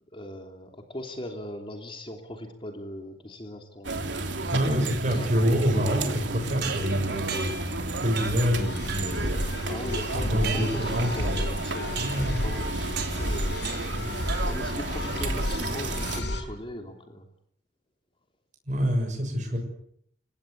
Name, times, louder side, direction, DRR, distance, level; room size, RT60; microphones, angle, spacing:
voice 1, 0.1-4.0 5.1-5.3 9.7-13.6 14.4-17.3 19.5-19.6, left 1 dB, 30° left, 4 dB, 3.1 m, -39 dB
sound 1, 3.8-16.2, right 2 dB, 85° right, 3.2 m, -32 dB
voice 2, 4.5-7.5 8.0-9.5 10.1-11.5 12.0-12.4 13.9-14.2 18.7-19.6, equal, 45° right, 2 dB, 6.7 m, -27 dB
sound 2, 6.6-7.7 8.2-8.5 8.9-9.2 9.9-11.0 11.4-11.7 12.0-12.3 13.0-13.3 13.6-14.0 14.3-14.7, right 7 dB, 60° right, 3.9 m, -37 dB
sound 3, 8.6-16.4, left 1 dB, 65° left, 5.3 m, -32 dB
30.0 x 17.0 x 8.6 m, 0.68 s
head